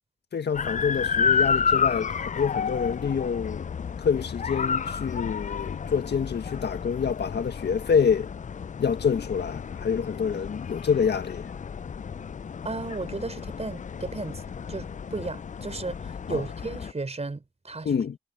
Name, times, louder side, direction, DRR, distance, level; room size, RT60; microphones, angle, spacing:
voice 1, 0.3-3.7 4.0-8.3 8.8-11.5 16.3-16.4 17.8-18.2, left 6 dB, 60° left, 1.8 m, -27 dB
sound 1, 0.5-16.9, left 6 dB, 40° left, 0.6 m, -31 dB
voice 2, 12.6-14.4 14.7-17.9, right 3 dB, 35° right, 4.9 m, -34 dB
supercardioid pair, 45°, 19 cm